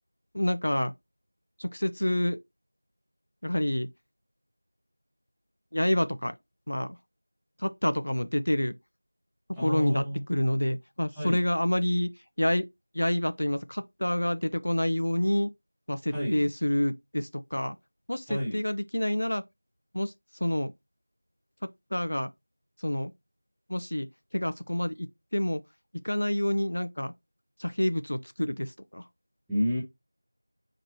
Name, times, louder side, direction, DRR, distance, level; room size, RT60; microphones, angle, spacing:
voice 1, 0.3-0.9 1.6-2.4 3.4-3.9 5.7-6.3 6.7-7.0 7.6-8.7 9.6-10.0 10.3-12.1 12.4-12.7 12.9-15.5 15.9-17.8 18.1-19.4 19.9-20.1 20.4-20.7 21.6-22.3 22.8-23.1 23.7-24.1 24.3-25.1 25.3-25.6 26.0-27.1 27.6-29.0, left 1 dB, 65° left, 0.4 m, -28 dB
voice 2, 9.5-10.2 11.1-11.4 16.1-16.4 18.3-18.6 29.5-29.8, equal, ahead, 0.7 m, -30 dB
4.1 x 2.9 x 2.9 m
figure-of-eight pair, 175°, 0 cm